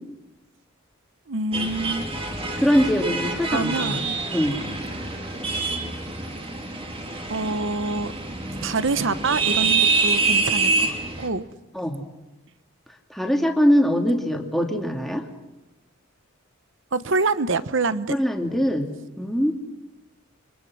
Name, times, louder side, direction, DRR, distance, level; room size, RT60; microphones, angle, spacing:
voice 1, 1.3-2.1 3.5-4.2 7.3-8.1 8.6-11.4 16.9-18.1, right 3 dB, 60° right, 14 dB, 1.0 m, -26 dB
sound 1, 1.5-11.3, right 4 dB, 25° right, 2.5 m, -26 dB
voice 2, 2.6-4.0 4.3-4.6 11.7-12.0 13.1-15.2 18.1-18.9 19.2-19.5, equal, ahead, 2 dB, 2.5 m, -22 dB
29.0 x 24.5 x 6.2 m, 1.0 s
head